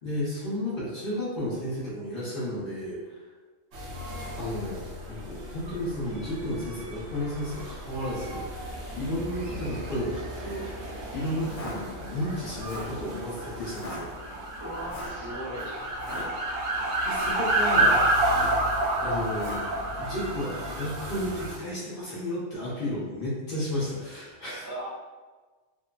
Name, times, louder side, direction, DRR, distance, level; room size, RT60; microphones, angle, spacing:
voice 1, 0.0-3.2 4.4-14.1 17.0-18.0 19.0-19.7 20.0-24.6, left 1 dB, 50° left, -9 dB, 1.0 m, -33 dB
sound 1, 3.7-21.6, right 1 dB, 85° right, 1.0 m, -30 dB
voice 2, 11.1-11.5 14.6-16.3 24.6-24.9, equal, 25° right, -12 dB, 0.6 m, -39 dB
sound 2, 11.4-11.8 12.5-13.0 13.7-14.0 14.9-15.2 15.9-16.3 17.0-17.5 18.2-18.6 19.3-19.7, left 1 dB, 80° left, 1.0 m, -39 dB
2.9 x 2.1 x 2.3 m, 1.3 s
omnidirectional pair, 1.3 m